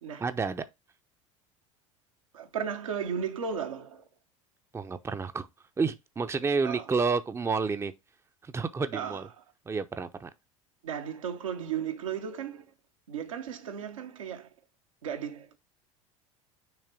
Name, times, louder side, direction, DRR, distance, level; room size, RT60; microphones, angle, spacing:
voice 1, 0.2-0.7 4.7-5.5 5.8-7.9 8.4-9.3 9.7-10.3, right 4 dB, 15° right, 0.7 m, -30 dB
voice 2, 2.3-4.0 6.6-6.9 8.9-9.3 10.8-12.6 13.1-14.5 15.0-15.6, right 8 dB, 75° right, 1.1 m, -35 dB
6.3 x 3.3 x 4.5 m
figure-of-eight pair, 70°, 17 cm